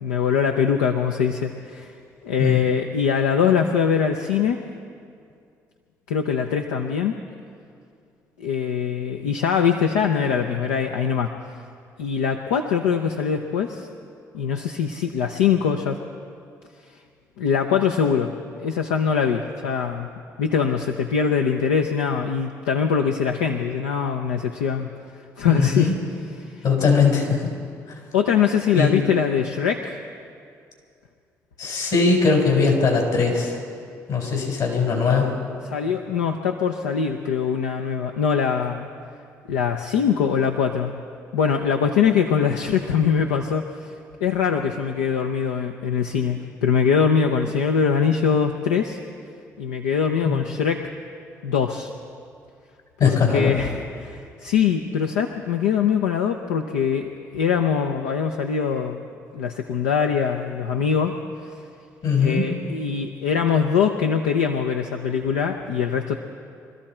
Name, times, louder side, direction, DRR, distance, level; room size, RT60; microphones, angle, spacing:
voice 1, 0.0-1.9 2.2-4.6 6.1-7.2 8.4-11.3 12.0-13.9 14.3-16.0 17.4-18.3 18.6-20.1 20.4-24.9 25.4-25.9 26.4-26.6 28.1-30.0 35.6-38.9 39.5-40.9 41.3-43.9 44.2-49.0 49.6-50.9 51.4-51.9 53.0-59.0 59.3-61.2 61.4-61.6 62.2-66.2, left 7 dB, 90° left, 4 dB, 0.6 m, -22 dB
voice 2, 25.5-26.0 26.6-27.4 28.7-29.0 31.6-33.6 34.1-35.3 50.2-50.4 53.0-53.5 62.0-62.5, left 5 dB, 65° left, 0 dB, 4.3 m, -20 dB
24.5 x 13.5 x 4.3 m, 2.4 s
hypercardioid pair, 55°, 8 cm